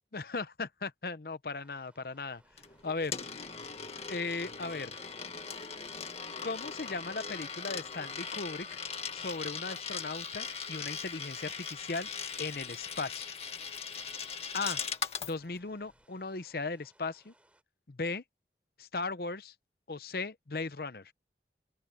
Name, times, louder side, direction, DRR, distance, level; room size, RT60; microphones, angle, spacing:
voice 1, 0.1-2.4 2.8-3.2 4.1-4.9 6.4-8.8 9.1-12.1 12.4-13.3 14.5-14.8 15.2-17.3 17.9-18.2 18.8-19.5 19.9-21.1, left 3 dB, 55° left, 0.8 m, -37 dB
sound 1, 1.5-17.6, right 1 dB, 5° right, 7.0 m, -66 dB
Coin (dropping), 2.6-15.3, left 6 dB, 35° left, 2.0 m, -40 dB
open air
head